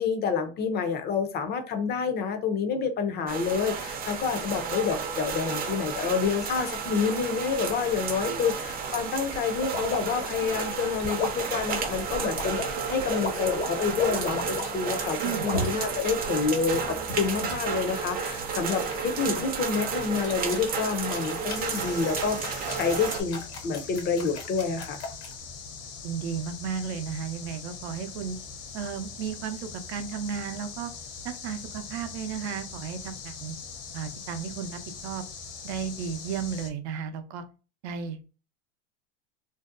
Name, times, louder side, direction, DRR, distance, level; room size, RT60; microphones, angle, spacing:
voice 1, 0.0-25.0, left 5 dB, 30° left, 0.5 m, -28 dB
sound 1, 3.3-23.2, right 6 dB, 25° right, 0.5 m, -32 dB
sound 2, 9.6-15.9 16.5-17.8 18.9-19.5 19.9-25.3, left 3 dB, 85° left, 1.2 m, -35 dB
voice 2, 15.1-15.5 26.0-28.4 28.7-30.9 31.2-33.6 33.9-35.2 35.6-37.4 37.8-38.2, right 7 dB, 70° right, 0.6 m, -34 dB
sound 3, 21.5-36.7, left 5 dB, 60° left, 0.8 m, -42 dB
2.6 x 2.1 x 2.4 m
hypercardioid pair, 105°, 33 cm